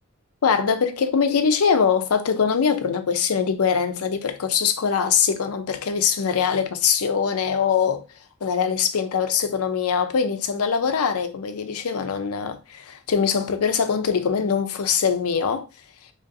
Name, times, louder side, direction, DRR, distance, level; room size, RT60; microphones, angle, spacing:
voice 1, 0.4-8.0 8.4-15.7, left 6 dB, 85° left, 0.5 m, -22 dB
2.9 x 2.7 x 4.0 m
head